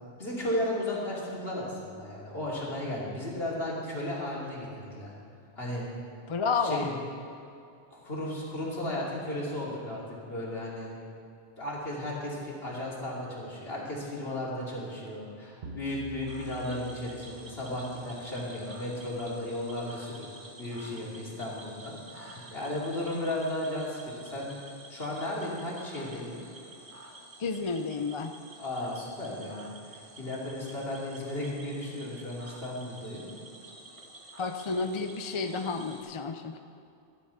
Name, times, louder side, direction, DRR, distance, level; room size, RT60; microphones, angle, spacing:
voice 1, 0.2-5.1 5.6-5.9 6.5-6.9 7.9-10.0 10.3-10.9 11.6-26.4 28.6-33.3, left 1 dB, 75° left, -5 dB, 3.1 m, -35 dB
voice 2, 6.3-6.9 27.4-28.3 34.4-36.6, left 4 dB, 35° left, 7 dB, 0.6 m, -31 dB
sound 1, 15.6-18.4, left 2 dB, 80° right, 1.1 m, -47 dB
Cricket / Frog, 16.3-36.0, right 2 dB, 35° right, 1.3 m, -50 dB
13.0 x 10.5 x 5.7 m, 2.6 s
omnidirectional pair, 1.0 m